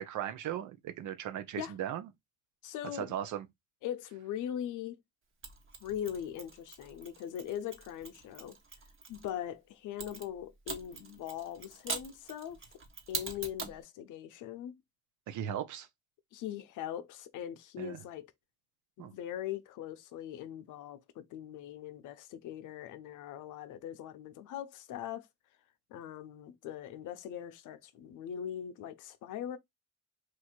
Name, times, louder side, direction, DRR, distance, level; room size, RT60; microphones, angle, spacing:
voice 1, 0.0-2.1 2.9-3.5 15.3-15.9 17.8-18.0 19.0-19.1, right 10 dB, 75° right, 0.7 m, -37 dB
voice 2, 2.6-3.1 3.8-5.0 5.8-8.6 9.1-12.6 13.1-14.8 16.3-18.3 19.0-25.3 25.9-29.6, left 10 dB, 85° left, 0.6 m, -41 dB
Mechanisms, 5.4-9.3 10.0-13.8, right 4 dB, 45° right, 1.2 m, -43 dB
3.1 x 2.5 x 4.4 m
cardioid pair, 90°, 30 cm